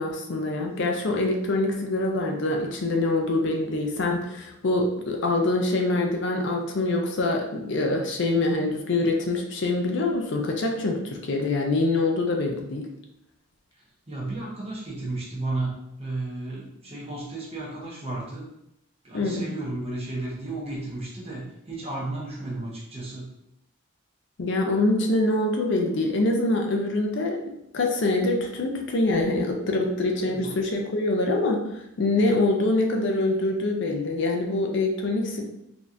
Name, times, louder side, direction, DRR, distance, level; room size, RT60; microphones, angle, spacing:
voice 1, 0.0-12.9 19.1-19.5 24.4-35.4, left 2 dB, 55° left, 2 dB, 0.5 m, -25 dB
voice 2, 13.7-18.5 19.0-23.3 30.3-30.6, right 2 dB, 25° right, -5 dB, 1.0 m, -33 dB
4.0 x 2.9 x 2.5 m, 0.82 s
head